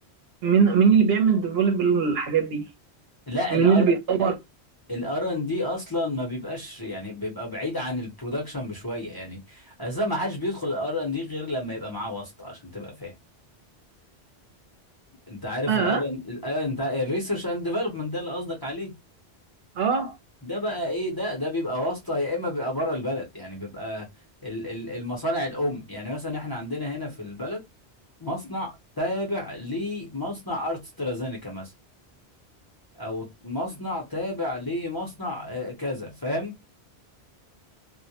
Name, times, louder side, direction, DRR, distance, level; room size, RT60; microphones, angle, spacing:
voice 1, 0.4-2.6 3.5-4.3 15.7-16.0 19.8-20.1, right 6 dB, 70° right, 0.8 m, -20 dB
voice 2, 3.3-3.9 4.9-13.1 15.3-18.9 20.4-24.1 24.4-27.6 28.2-31.7 33.0-36.5, left 1 dB, 25° left, 0.6 m, -30 dB
2.2 x 2.1 x 2.8 m
omnidirectional pair, 1.1 m